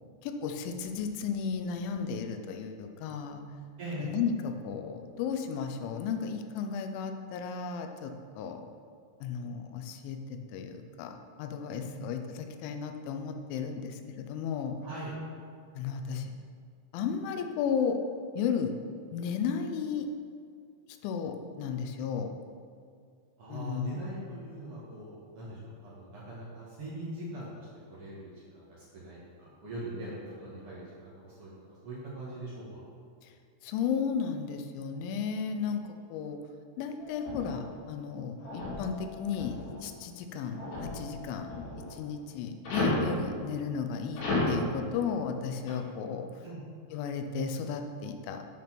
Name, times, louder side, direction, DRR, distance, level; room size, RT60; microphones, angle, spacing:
voice 1, 0.2-3.4 4.0-8.6 9.2-11.1 11.4-14.7 15.8-16.3 16.9-18.0 18.4-18.7 19.1-20.1 21.0-22.3 23.5-24.0 33.6-36.4 36.8-39.6 39.8-41.5 41.9-46.3 46.9-48.4, left 6 dB, 80° left, 6 dB, 3.0 m, -34 dB
voice 2, 3.8-4.1 11.8-12.0 14.8-15.1 23.4-31.5 31.8-32.8 46.4-46.6, right 2 dB, 85° right, -8 dB, 1.2 m, -42 dB
sound 1, 37.0-37.7 38.4-39.8 40.5-41.9 42.6-43.1 44.2-44.6 45.7-45.8, left 2 dB, 60° left, 4.8 m, -33 dB
8.7 x 6.3 x 6.0 m, 2.2 s
omnidirectional pair, 5.6 m